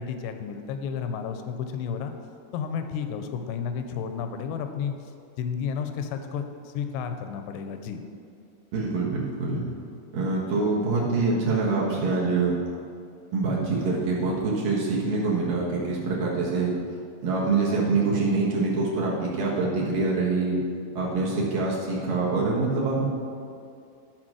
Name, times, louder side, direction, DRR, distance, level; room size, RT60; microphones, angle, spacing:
voice 1, 0.0-2.1 2.5-5.0 5.4-8.0, left 7 dB, 90° left, 7 dB, 2.8 m, -32 dB
voice 2, 8.7-9.6 10.1-12.6 13.3-16.7 17.2-20.6 21.0-23.1, right 3 dB, 60° right, -5 dB, 2.7 m, -25 dB
13.5 x 4.8 x 6.2 m, 2.4 s
omnidirectional pair, 4.7 m